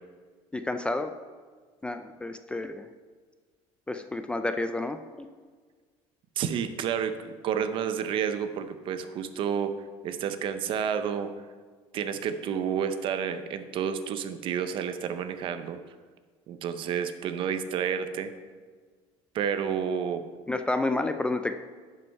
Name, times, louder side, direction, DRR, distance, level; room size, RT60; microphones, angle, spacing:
voice 1, 0.5-1.1 1.8-2.9 3.9-5.0 20.5-21.6, left 2 dB, 10° left, 8 dB, 0.3 m, -30 dB
voice 2, 6.4-9.8 10.0-11.3 11.9-15.8 16.5-18.3 19.3-20.3, right 8 dB, 50° right, 10 dB, 0.7 m, -30 dB
11.0 x 5.3 x 4.6 m, 1.5 s
cardioid pair, 140°, 12 cm